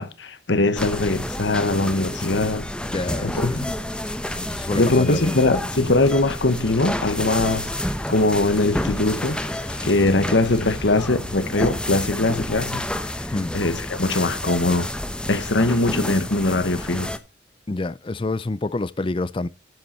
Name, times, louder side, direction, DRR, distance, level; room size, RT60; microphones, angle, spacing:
voice 1, 0.0-2.7 3.2-3.6 4.7-7.7 8.1-9.4 9.8-13.1 13.5-14.9 15.3-17.1, left 2 dB, 75° left, 1.3 m, -21 dB
sound 1, 0.8-17.2, left 1 dB, 5° left, 0.9 m, -30 dB
voice 2, 2.9-3.7 4.3-5.4 10.2-10.4 13.3-13.6 17.7-19.5, left 2 dB, 30° left, 0.4 m, -28 dB
sound 2, 3.0-11.9, left 2 dB, 60° left, 2.0 m, -42 dB
12.5 x 7.9 x 4.4 m
head